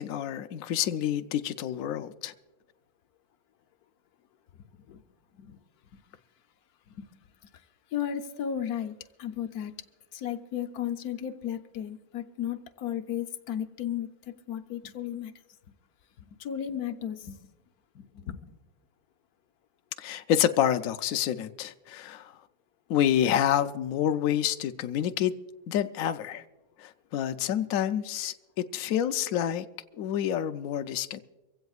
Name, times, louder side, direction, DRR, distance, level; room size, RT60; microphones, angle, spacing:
voice 1, 0.0-2.3 20.0-22.4 22.9-25.3 25.7-26.4 26.8-29.6 30.0-31.2, left 10 dB, 80° left, 0.7 m, -28 dB
voice 2, 4.5-5.0 5.3-5.6 6.9-7.1 7.4-7.5 7.9-8.9 9.2-9.7 10.1-15.3 16.2-17.4 17.9-18.4, left 10 dB, 65° left, 1.1 m, -35 dB
24.5 x 16.0 x 2.4 m
omnidirectional pair, 2.1 m